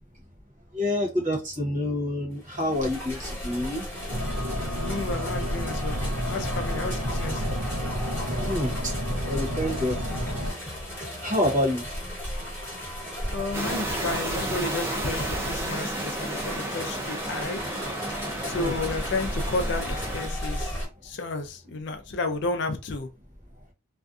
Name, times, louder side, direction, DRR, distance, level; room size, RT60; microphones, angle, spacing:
voice 1, 0.7-4.4 8.3-8.9 9.2-10.1 10.4-10.8 11.2-11.8 18.5-18.8, left 1 dB, 35° right, 1.0 m, -28 dB
sound 1, 2.4-20.9, equal, 10° left, 1.0 m, -35 dB
sound 2, 4.1-10.5, equal, 75° right, 0.6 m, -30 dB
voice 2, 4.7-6.0 6.3-7.4 13.3-17.6 18.4-23.1, left 3 dB, 55° left, 0.5 m, -32 dB
sound 3, 13.5-20.3, right 1 dB, 10° right, 0.5 m, -32 dB
2.5 x 2.3 x 2.5 m
head